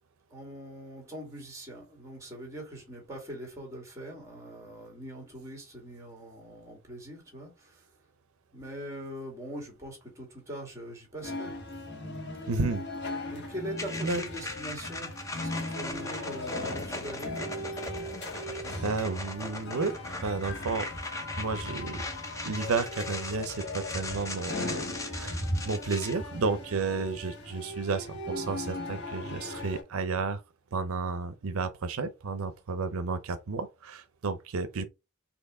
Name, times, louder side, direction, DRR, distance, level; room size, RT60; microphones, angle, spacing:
voice 1, 0.3-7.8 8.5-11.5 13.3-17.4 18.2-19.0, equal, 15° right, 1.8 m, -42 dB
sound 1, 11.2-29.8, left 1 dB, 50° left, 1.3 m, -38 dB
voice 2, 12.5-12.8 14.0-14.2 18.3-18.4 18.8-19.9 20.2-20.9 21.4-22.0 22.4-24.8 25.1-30.4 30.7-34.8, right 4 dB, 80° right, 0.5 m, -32 dB
sound 2, 13.8-26.1, left 2 dB, 15° left, 0.7 m, -39 dB
4.3 x 2.9 x 3.7 m
head